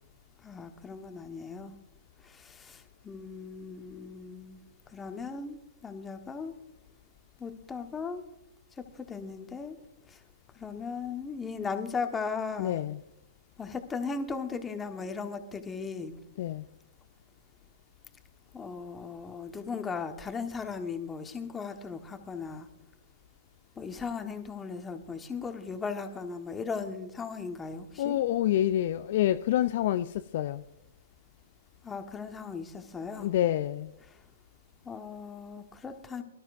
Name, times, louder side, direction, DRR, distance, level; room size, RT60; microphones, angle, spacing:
voice 1, 0.4-1.7 2.2-4.6 4.9-6.5 7.4-8.2 8.8-9.8 10.1-10.2 10.5-12.8 13.6-16.2 18.5-22.7 23.8-28.2 31.8-33.3 34.1-34.2 34.8-36.2, left 5 dB, 15° left, 1.3 m, -37 dB
voice 2, 12.6-13.0 16.4-16.6 28.0-30.6 33.2-33.9, left 12 dB, 50° left, 0.4 m, -27 dB
23.5 x 12.5 x 2.6 m
figure-of-eight pair, 120°, 0 cm